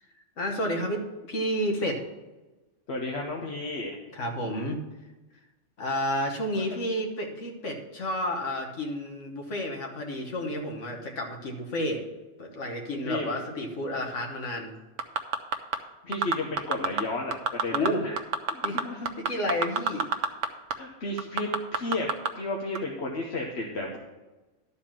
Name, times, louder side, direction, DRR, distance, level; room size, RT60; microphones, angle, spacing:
voice 1, 0.4-2.0 4.1-4.8 5.8-12.0 12.4-14.7 17.7-18.0 18.6-20.1, equal, 85° left, 2 dB, 1.6 m, -31 dB
voice 2, 2.9-4.0 6.6-6.8 13.0-13.3 16.1-18.1 18.5-19.1 20.7-22.1 22.3-24.0, left 2 dB, 65° left, -1 dB, 1.2 m, -33 dB
sound 1, 15.0-15.8 16.1-17.0 17.3-17.9 18.2-20.5 20.7-20.8 21.2-22.3 22.7-22.8, right 5 dB, 80° right, 1.1 m, -26 dB
12.0 x 4.2 x 7.4 m, 1.1 s
omnidirectional pair, 1.2 m